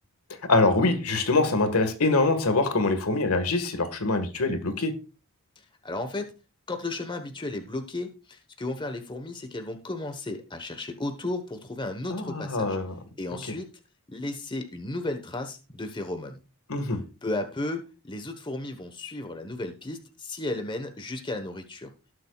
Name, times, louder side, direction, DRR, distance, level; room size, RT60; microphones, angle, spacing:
voice 1, 0.5-4.9 12.1-13.0 13.3-13.4 16.7-17.0, left 2 dB, 80° left, 1.7 m, -24 dB
voice 2, 5.8-6.3 6.7-12.8 13.2-13.7 14.1-16.4 17.2-21.9, left 2 dB, 20° left, 1.2 m, -34 dB
18.0 x 7.6 x 2.4 m
head